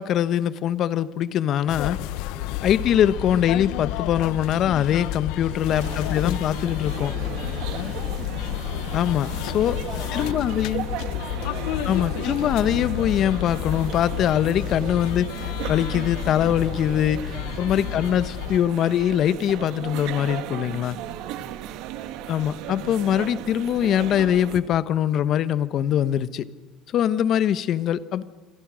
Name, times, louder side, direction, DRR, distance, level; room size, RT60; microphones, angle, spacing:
voice 1, 0.0-2.0 2.6-7.1 8.9-9.7 10.1-10.8 11.8-21.0 22.3-26.5 26.9-28.2, left 10 dB, 55° left, 15 dB, 1.1 m, -23 dB
sound 1, 1.7-18.6, left 14 dB, 80° left, 0.7 m, -30 dB
voice 2, 5.2-8.3 9.4-12.4 17.1-17.7 20.8-22.0, right 5 dB, 35° right, 7 dB, 2.6 m, -45 dB
sound 2, 5.7-24.6, right 11 dB, 70° right, 1.7 m, -36 dB
27.5 x 23.0 x 6.3 m, 1.3 s
supercardioid pair, 105°, 0 cm